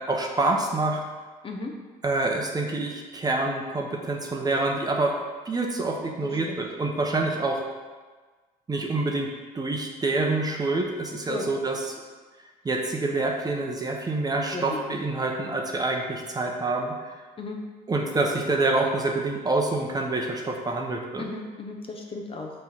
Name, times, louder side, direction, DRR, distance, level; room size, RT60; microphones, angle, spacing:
voice 1, 0.1-1.0 2.0-5.1 5.4-7.6 8.7-9.3 9.5-11.9 12.6-16.9 17.9-21.2, right 2 dB, 20° right, 0 dB, 0.9 m, -26 dB
voice 2, 6.2-6.6 11.3-11.5 14.5-14.9 17.4-17.6 21.2-22.5, left 3 dB, 30° left, 2 dB, 0.8 m, -35 dB
6.0 x 3.4 x 5.9 m, 1.4 s
cardioid pair, 110°, 17 cm